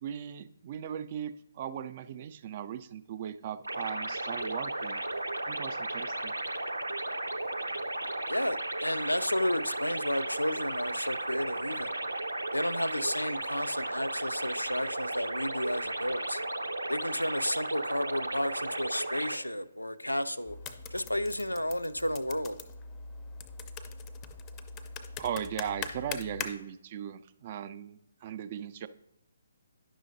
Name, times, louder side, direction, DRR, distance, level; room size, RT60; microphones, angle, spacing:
voice 1, 0.0-5.0 5.5-6.3 25.2-28.9, right 9 dB, 35° right, 0.3 m, -38 dB
sound 1, 3.6-19.4, right 2 dB, 80° right, 0.6 m, -35 dB
voice 2, 8.3-11.9 12.5-16.4 16.9-20.6 20.9-22.6, left 1 dB, 90° left, 0.4 m, -32 dB
sound 2, 20.5-26.5, left 5 dB, 20° left, 0.5 m, -42 dB
10.0 x 6.2 x 2.6 m
figure-of-eight pair, 135°, 0 cm